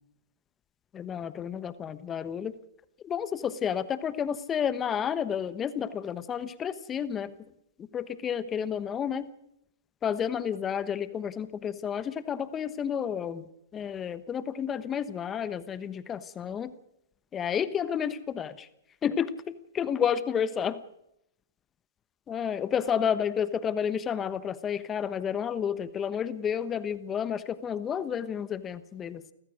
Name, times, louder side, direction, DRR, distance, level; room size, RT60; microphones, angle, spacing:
voice 1, 0.9-2.5 3.0-7.3 7.8-9.3 10.0-13.4 13.7-16.7 17.3-18.7 19.0-20.8 22.3-29.2, left 8 dB, 20° left, 14 dB, 1.2 m, -31 dB
29.5 x 15.0 x 6.5 m, 0.78 s
hypercardioid pair, 125°, 0 cm